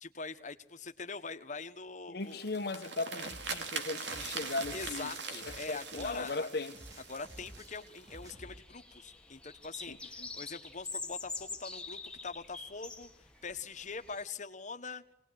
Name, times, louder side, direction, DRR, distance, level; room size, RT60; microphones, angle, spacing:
voice 1, 0.0-2.5 4.7-6.5 7.1-13.1 13.4-15.0, left 4 dB, 45° left, 1.4 m, -43 dB
voice 2, 2.1-6.7 9.9-10.3, left 3 dB, 60° left, 1.2 m, -38 dB
sound 1, 2.2-8.3, right 4 dB, 80° right, 2.7 m, -42 dB
sound 2, 3.2-6.5 6.7-8.6, equal, 20° right, 3.6 m, -53 dB
sound 3, 6.8-14.3, left 3 dB, 5° left, 1.8 m, -46 dB
25.5 x 19.5 x 9.5 m
head